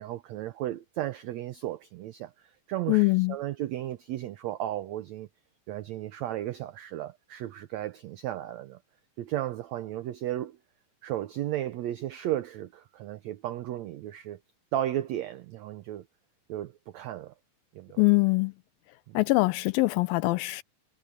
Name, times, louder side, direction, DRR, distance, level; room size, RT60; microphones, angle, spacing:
voice 1, 0.0-5.3 5.7-8.8 9.2-10.6 11.0-14.4 14.7-16.0 16.5-17.3 17.7-18.0 19.1-19.2, right 13 dB, 85° right, 1.5 m, -34 dB
voice 2, 2.9-3.4 18.0-18.5 19.1-20.6, left 23 dB, 85° left, 2.5 m, -23 dB
omnidirectional pair, 4.1 m